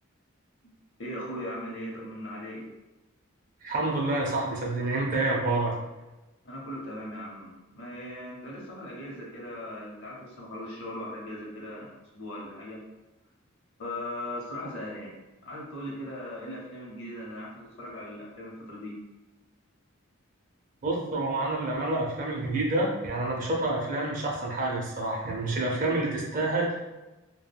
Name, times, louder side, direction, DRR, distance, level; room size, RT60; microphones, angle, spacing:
voice 1, 1.0-2.7 6.4-12.8 13.8-15.1 15.4-19.0, left 1 dB, 60° left, -3 dB, 0.8 m, -39 dB
voice 2, 3.6-5.7 20.8-26.8, right 2 dB, 40° right, -1 dB, 0.5 m, -28 dB
3.3 x 2.2 x 2.2 m, 1.1 s
head